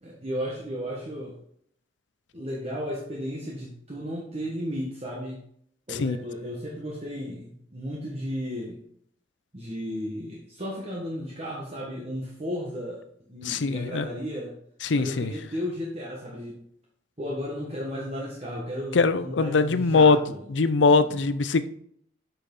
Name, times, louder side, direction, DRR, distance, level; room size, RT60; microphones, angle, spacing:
voice 1, 0.0-1.3 2.3-5.4 5.9-8.8 9.5-13.0 13.3-14.5 14.9-16.6 17.2-20.4 20.9-21.2, equal, 35° right, 1.4 m, -34 dB
voice 2, 13.5-14.1 14.8-15.3 18.9-20.2 20.5-21.7, left 4 dB, 90° left, 0.6 m, -21 dB
8.3 x 5.9 x 3.9 m
head